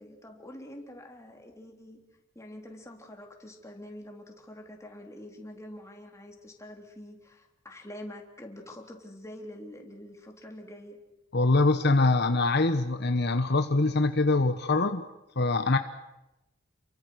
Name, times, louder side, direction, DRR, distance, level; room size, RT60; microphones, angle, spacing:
voice 1, 0.0-2.0 2.4-11.0, left 1 dB, 15° left, 2 dB, 3.6 m, -46 dB
voice 2, 11.3-15.0 15.4-15.8, left 2 dB, 60° left, 8 dB, 1.1 m, -24 dB
29.5 x 23.5 x 6.4 m, 0.95 s
head